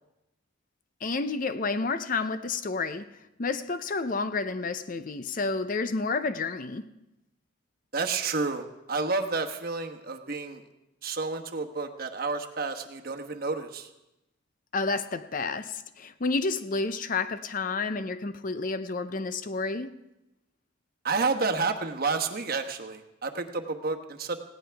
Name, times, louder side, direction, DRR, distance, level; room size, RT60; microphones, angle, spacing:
voice 1, 1.0-3.1 3.4-6.9 14.7-19.9, left 3 dB, 40° left, 0.6 m, -30 dB
voice 2, 7.9-10.6 11.0-13.9 21.0-24.4, right 4 dB, 45° right, 1.1 m, -30 dB
19.0 x 16.5 x 3.4 m
head